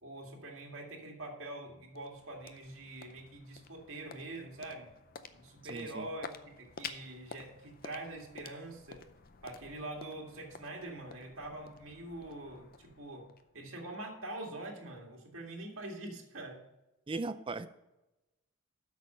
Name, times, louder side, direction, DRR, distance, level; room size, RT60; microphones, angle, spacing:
voice 1, 0.0-4.9 5.3-9.0 9.4-13.3 13.5-16.6, right 2 dB, 60° right, -1 dB, 2.2 m, -44 dB
sound 1, 1.5-13.9, left 5 dB, 40° left, 0.5 m, -51 dB
voice 2, 5.7-6.1 17.1-17.7, right 3 dB, 25° right, 11 dB, 0.4 m, -37 dB
8.3 x 6.4 x 5.6 m, 0.98 s
head